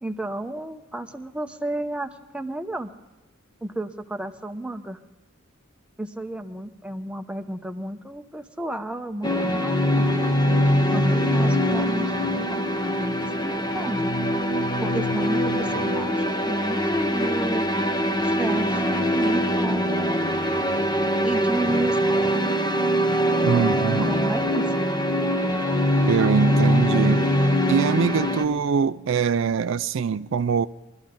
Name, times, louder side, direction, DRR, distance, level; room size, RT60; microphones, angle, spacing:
voice 1, 0.0-2.9 3.6-5.0 6.0-10.2 10.9-12.6 13.0-14.1 14.8-17.7 18.2-22.6 24.1-24.9, right 1 dB, 5° right, 0.8 m, -32 dB
sound 1, 9.2-28.4, equal, 20° left, 1.0 m, -23 dB
voice 2, 23.4-24.1 26.1-27.3 27.7-30.7, right 6 dB, 65° right, 0.4 m, -23 dB
22.0 x 13.0 x 3.8 m
head